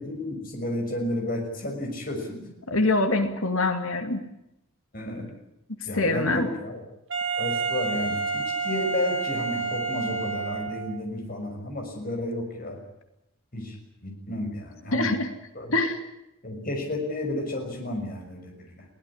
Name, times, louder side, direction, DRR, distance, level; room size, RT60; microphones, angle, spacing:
voice 1, 0.0-2.4 4.9-5.3 5.8-6.8 7.4-12.8 13.5-13.8 14.0-15.1 15.5-15.7 16.4-18.8, left 1 dB, 40° left, 3 dB, 6.1 m, -32 dB
voice 2, 2.7-4.2 5.9-6.5 14.9-15.3 15.7-16.0, left 2 dB, 75° left, 7 dB, 2.6 m, -24 dB
Wind instrument woodwind instrument, 7.1-11.0, right 4 dB, 60° right, 2.1 m, -29 dB
22.5 x 17.5 x 9.9 m, 0.84 s
head